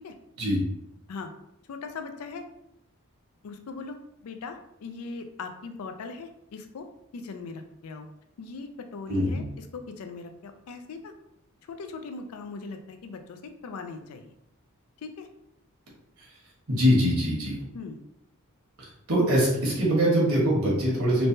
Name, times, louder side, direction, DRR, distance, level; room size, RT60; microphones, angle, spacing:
voice 1, 1.7-2.4 3.4-6.9 7.1-8.1 8.4-11.1 11.7-14.3 15.0-15.3 17.7-18.0, left 4 dB, 90° left, 6 dB, 0.4 m, -40 dB
voice 2, 9.1-9.4 16.7-17.6 19.1-21.3, equal, 75° right, -4 dB, 1.1 m, -23 dB
3.1 x 2.1 x 2.7 m, 0.80 s
head